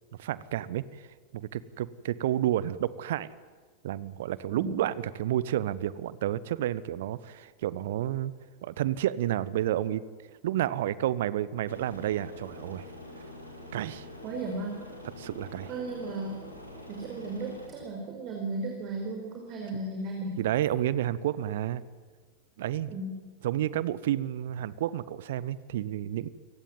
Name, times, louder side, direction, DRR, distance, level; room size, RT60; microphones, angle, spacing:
voice 1, 0.2-0.8 1.3-3.3 3.8-8.3 8.6-10.0 10.4-12.8 13.7-14.1 15.2-15.7 20.4-21.8 22.6-22.9 23.4-26.3, right 12 dB, 55° right, 19 dB, 1.0 m, -30 dB
Aircraft, 11.7-17.7, left 1 dB, 90° left, 4.6 m, -45 dB
voice 2, 14.2-14.8 15.7-16.4 16.9-20.4 22.9-23.2, right 2 dB, 40° right, 1 dB, 4.8 m, -35 dB
28.5 x 18.0 x 9.3 m, 1.5 s
figure-of-eight pair, 90°, 0 cm